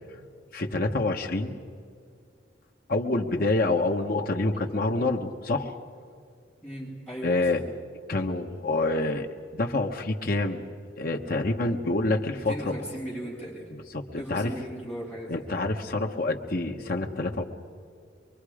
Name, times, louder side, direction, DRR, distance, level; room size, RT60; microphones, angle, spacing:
voice 1, 0.5-1.5 2.9-5.7 7.2-7.6 8.1-10.6 11.0-12.7 13.7-14.5 15.3-17.4, left 2 dB, 55° left, 3 dB, 1.3 m, -27 dB
voice 2, 6.6-7.4 12.3-13.7 14.1-15.4, right 1 dB, 5° left, -7 dB, 7.8 m, -37 dB
24.0 x 23.5 x 5.0 m, 2.3 s
head